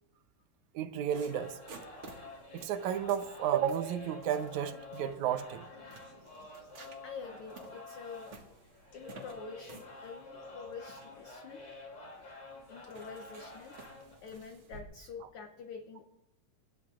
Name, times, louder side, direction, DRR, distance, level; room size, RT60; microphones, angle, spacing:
voice 1, 0.8-1.6 2.5-5.7, right 9 dB, 80° right, 2.2 m, -32 dB
sound 1, 1.1-14.2, left 2 dB, 40° left, 3.3 m, -49 dB
sound 2, 1.1-14.8, right 4 dB, 50° right, 2.2 m, -56 dB
voice 2, 7.0-8.4 8.9-11.6 12.7-13.7 14.2-16.0, left 5 dB, 70° left, 1.3 m, -46 dB
24.5 x 12.0 x 2.4 m
omnidirectional pair, 3.3 m